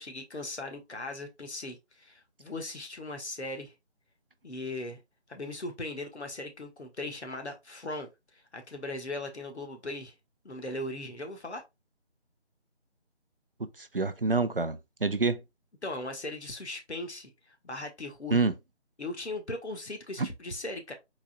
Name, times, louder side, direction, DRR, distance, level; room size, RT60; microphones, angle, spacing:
voice 1, 0.0-3.7 4.4-5.0 5.3-8.1 8.3-10.1 10.4-11.6 15.8-18.4 19.0-20.9, left 2 dB, 70° left, 1.4 m, -38 dB
voice 2, 13.6-15.4 18.3-18.5 20.2-20.3, right 3 dB, 55° right, 0.5 m, -27 dB
5.3 x 4.1 x 2.2 m
figure-of-eight pair, 175°, 35 cm